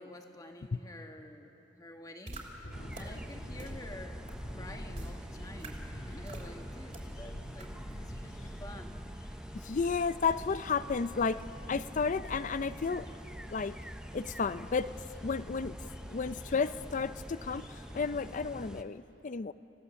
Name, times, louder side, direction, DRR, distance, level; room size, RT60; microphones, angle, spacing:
voice 1, 0.0-2.4 2.9-4.2 4.5-9.0, left 1 dB, 20° left, 4 dB, 1.4 m, -49 dB
sound 1, 2.3-2.4 2.9-3.0 3.6-3.7 4.3-4.4 4.9-5.1 5.6-5.7 6.3-6.5 6.9-7.0 7.6-7.7, right 2 dB, 45° right, 3.1 m, -43 dB
sound 2, 2.6-18.7, equal, 80° left, 2.8 m, -49 dB
sound 3, 2.7-18.8, equal, 5° right, 0.6 m, -45 dB
voice 2, 9.5-11.4 11.7-13.1 13.5-13.8 14.1-14.9 15.2-15.8 16.1-17.6 17.9-19.5, left 5 dB, 45° left, 15 dB, 0.5 m, -32 dB
26.0 x 16.5 x 7.0 m, 2.9 s
head